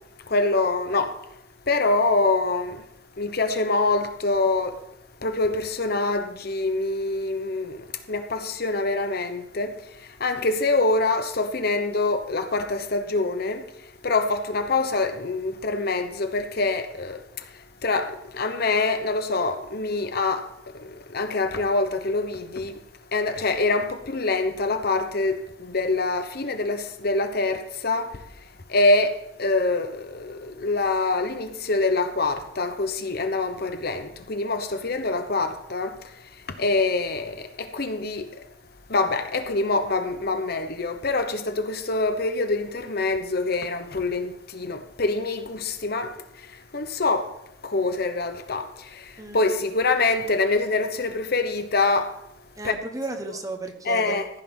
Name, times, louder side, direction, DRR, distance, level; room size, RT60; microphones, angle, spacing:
voice 1, 0.3-1.1 1.7-2.8 3.2-4.7 5.2-7.8 8.1-9.7 10.2-13.6 14.0-17.2 17.8-20.5 21.1-22.7 23.1-28.1 28.7-29.1 29.4-35.9 36.6-38.3 38.9-46.1 46.7-47.3 47.6-48.7 49.3-52.1 52.6-52.7 53.9-54.3, left 3 dB, 55° left, 1.0 m, -25 dB
voice 2, 49.2-49.5 52.6-54.2, right 2 dB, 20° right, 1.1 m, -34 dB
14.5 x 5.9 x 6.1 m
head